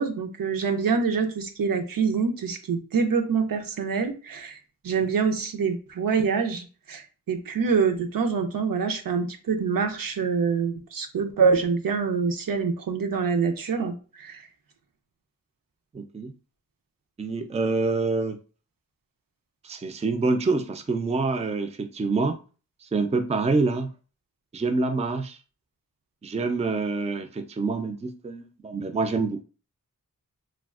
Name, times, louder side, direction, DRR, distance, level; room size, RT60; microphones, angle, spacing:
voice 1, 0.0-4.6 4.8-14.4, right 5 dB, 80° right, 5 dB, 0.6 m, -25 dB
voice 2, 15.9-16.3 17.2-18.4 19.6-22.4 22.8-23.9 24.5-25.4 26.2-29.4, right 3 dB, 20° right, 7 dB, 0.3 m, -26 dB
3.3 x 2.3 x 2.3 m, 0.36 s
wide cardioid pair, 65°, 33 cm